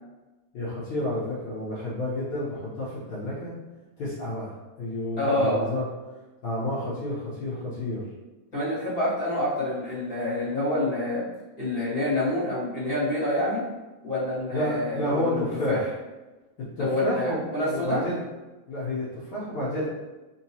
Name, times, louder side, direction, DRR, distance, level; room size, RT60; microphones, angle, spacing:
voice 1, 0.5-3.5 4.0-5.8 6.4-8.0 14.5-15.8 16.6-17.4 17.7-18.2 18.7-19.9, left 1 dB, 70° left, -9 dB, 1.2 m, -30 dB
voice 2, 5.2-5.7 8.5-11.2 11.6-13.6 14.0-15.8 16.8-18.0, left 1 dB, 40° left, -11 dB, 1.7 m, -27 dB
4.5 x 2.9 x 2.8 m, 1.1 s
omnidirectional pair, 3.4 m